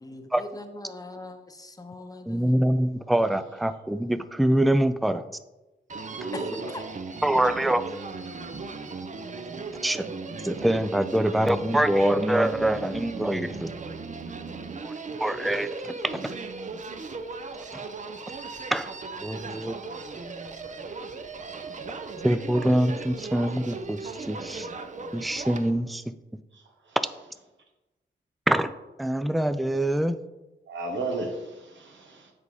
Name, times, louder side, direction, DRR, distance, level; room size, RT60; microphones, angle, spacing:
voice 1, 0.0-2.6 6.3-6.4 6.7-6.8, left 2 dB, 20° left, 6 dB, 0.8 m, -41 dB
voice 2, 2.3-5.2 7.2-7.8 9.8-10.1 10.4-13.7 14.8-14.9 15.2-15.7 16.0-16.3 18.7-18.9 19.2-19.7 22.2-24.7 25.1-26.0 28.5-28.7 29.0-30.2, right 1 dB, ahead, 12 dB, 0.3 m, -24 dB
Human voice, 5.9-25.7, right 4 dB, 40° right, 0.6 m, -37 dB
voice 3, 6.2-6.8 26.5-26.6 30.7-32.3, right 2 dB, 85° right, 2 dB, 1.2 m, -34 dB
7.5 x 4.1 x 4.8 m, 1.0 s
cardioid pair, 85°, 19 cm